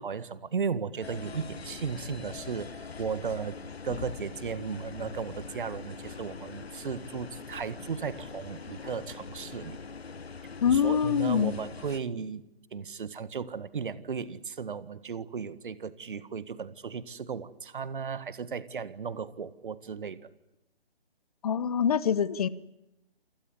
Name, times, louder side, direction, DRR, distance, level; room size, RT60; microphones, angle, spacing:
voice 1, 0.0-3.6 3.8-9.8 10.7-20.3, right 6 dB, 55° right, 16 dB, 1.7 m, -35 dB
sound 1, 1.0-12.0, left 5 dB, 75° left, 1.3 m, -42 dB
voice 2, 10.6-11.5 21.4-22.5, left 7 dB, 35° left, 19 dB, 1.1 m, -25 dB
28.0 x 18.5 x 9.8 m, 0.92 s
figure-of-eight pair, 150°, 31 cm